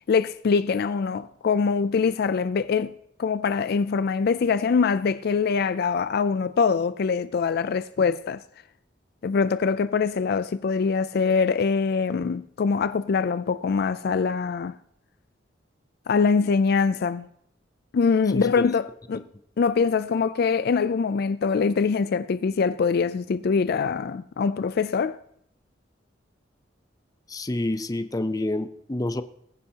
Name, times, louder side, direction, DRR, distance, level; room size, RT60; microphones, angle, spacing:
voice 1, 0.1-8.4 9.2-14.8 16.1-17.3 17.9-19.2 19.6-25.2, left 5 dB, 55° left, 0.4 m, -23 dB
voice 2, 18.3-18.7 27.3-29.2, left 1 dB, 20° left, 0.6 m, -28 dB
21.0 x 10.0 x 2.9 m
head